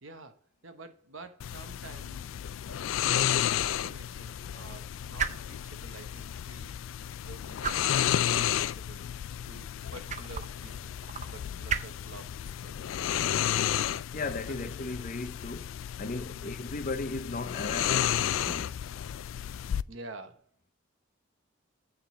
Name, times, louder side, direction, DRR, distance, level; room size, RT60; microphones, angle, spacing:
voice 1, 0.0-2.3 2.7-9.0 9.4-11.0 11.3-12.8 14.5-14.8 16.3-16.7 19.9-20.4, right 3 dB, 75° right, 1.2 m, -49 dB
sound 1, 1.4-19.8, left 10 dB, 70° left, 0.3 m, -32 dB
sound 2, 2.2-15.7, right 6 dB, 35° right, 0.5 m, -42 dB
voice 2, 14.1-15.7 16.0-18.7, left 3 dB, 40° left, 0.7 m, -36 dB
8.9 x 3.8 x 6.8 m
head